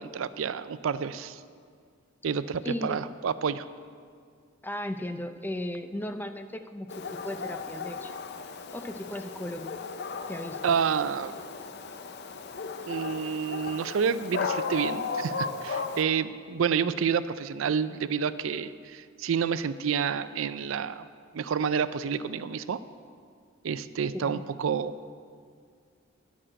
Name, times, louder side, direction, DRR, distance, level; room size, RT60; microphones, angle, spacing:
voice 1, 0.0-1.4 2.2-3.7 10.6-11.4 12.9-21.1 21.3-22.8 23.6-24.9, right 6 dB, 75° right, 14 dB, 0.4 m, -29 dB
voice 2, 2.6-3.1 4.6-8.1 8.7-9.8 10.3-10.6 24.1-24.5, left 1 dB, 10° left, 8 dB, 0.4 m, -36 dB
Dog, 6.9-16.0, left 4 dB, 55° left, 0.6 m, -35 dB
10.0 x 6.1 x 8.7 m, 2.1 s
head